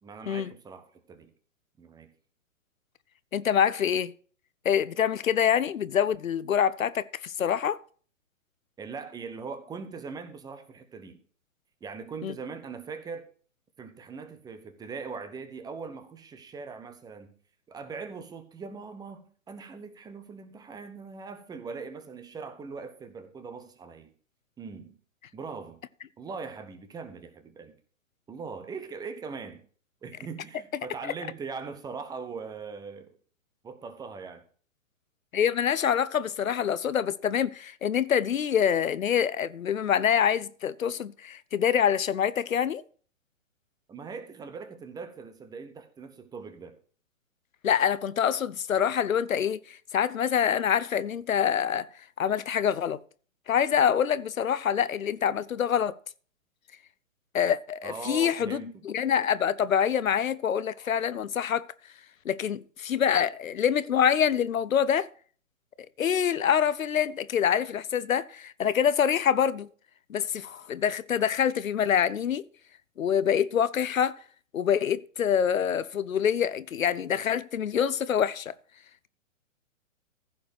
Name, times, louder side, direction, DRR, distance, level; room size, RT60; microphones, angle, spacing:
voice 1, 0.0-1.3 1.8-2.1 8.8-11.2 11.8-13.3 13.8-17.3 17.7-24.1 24.6-25.0 25.3-25.8 26.2-27.7 28.3-29.6 30.0-33.1 33.6-34.4 43.9-46.7 57.8-58.8, right 5 dB, 10° right, 1.0 m, -41 dB
voice 2, 3.3-4.1 4.6-7.8 12.2-12.3 31.0-31.1 35.3-42.8 47.6-51.9 52.2-53.0 53.5-56.0 57.3-61.6 62.2-65.1 66.0-69.7 70.1-72.4 73.0-74.1 74.5-78.5, left 8 dB, 80° left, 0.8 m, -26 dB
15.0 x 5.1 x 6.4 m
hypercardioid pair, 130°, 40 cm